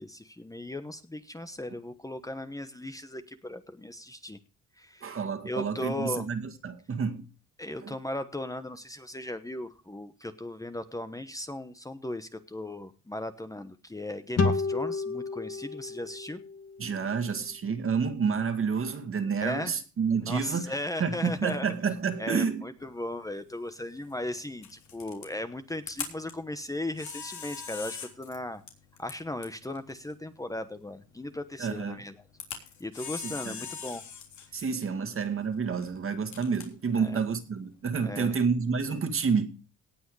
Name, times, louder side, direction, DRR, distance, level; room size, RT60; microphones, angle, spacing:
voice 1, 0.0-4.4 4.8-5.2 5.4-6.3 7.6-16.4 19.4-19.8 20.2-21.7 22.2-28.6 29.0-32.1 32.8-34.0 34.5-34.6 36.9-37.2 38.0-38.4, left 1 dB, 10° left, 1.1 m, -37 dB
voice 2, 5.0-7.3 7.8-8.0 16.8-22.6 31.6-32.0 33.2-33.7 34.5-39.5, right 5 dB, 45° right, 2.1 m, -29 dB
sound 1, 14.4-17.7, left 4 dB, 55° left, 2.1 m, -31 dB
Camera, 22.8-38.2, left 7 dB, 70° left, 3.4 m, -45 dB
18.0 x 6.3 x 4.8 m
cardioid pair, 90°, 30 cm